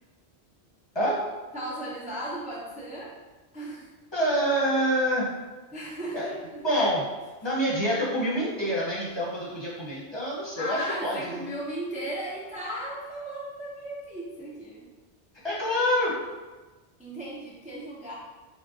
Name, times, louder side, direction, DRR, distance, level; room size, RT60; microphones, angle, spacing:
voice 1, 1.5-3.1 3.5-3.9 5.7-6.6 10.6-14.8 17.0-18.1, right 1 dB, 10° right, -6 dB, 0.5 m, -36 dB
voice 2, 4.1-5.3 6.1-6.3 6.6-7.0 7.4-11.4 15.4-16.2, equal, 25° left, -6 dB, 1.0 m, -26 dB
5.9 x 2.2 x 2.7 m, 1.2 s
omnidirectional pair, 1.1 m